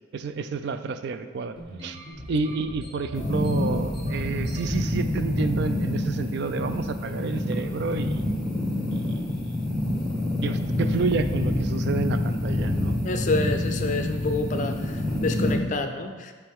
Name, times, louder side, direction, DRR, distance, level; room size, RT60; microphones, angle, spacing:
voice 1, 0.1-1.5 1.8-2.0 2.3-8.2 8.9-9.5 10.4-13.0, right 4 dB, 60° right, 10 dB, 0.3 m, -30 dB
sound 1, 1.6-4.8 5.3-5.8 6.1-6.3 6.7-7.0 7.6-7.8, equal, 25° right, 1.2 m, -41 dB
sound 2, 3.1-15.6, left 1 dB, 5° left, 0.9 m, -27 dB
voice 2, 13.0-16.3, left 3 dB, 40° left, 7 dB, 0.4 m, -28 dB
8.4 x 3.4 x 3.5 m, 1.4 s
head